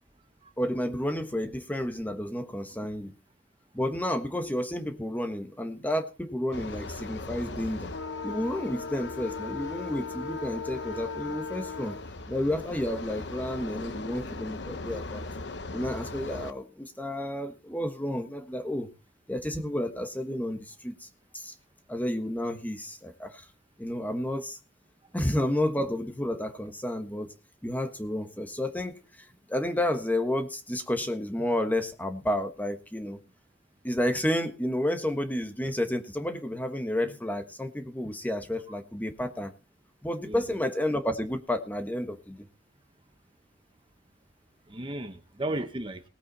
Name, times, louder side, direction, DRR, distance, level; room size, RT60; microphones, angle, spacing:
voice 1, 0.6-3.1 3.7-7.9 8.2-12.0 12.3-15.2 15.7-18.9 19.3-21.1 21.3-21.5 21.9-23.4 23.8-24.6 25.1-27.3 27.6-28.9 29.5-33.2 33.8-39.5 40.0-42.4, left 1 dB, 10° left, 7 dB, 1.3 m, -31 dB
sound 1, 6.5-16.5, left 3 dB, 70° left, 1.0 m, -38 dB
voice 2, 40.3-40.6 44.7-46.0, right 1 dB, 30° right, 8 dB, 1.0 m, -35 dB
18.5 x 8.5 x 4.1 m, 0.32 s
head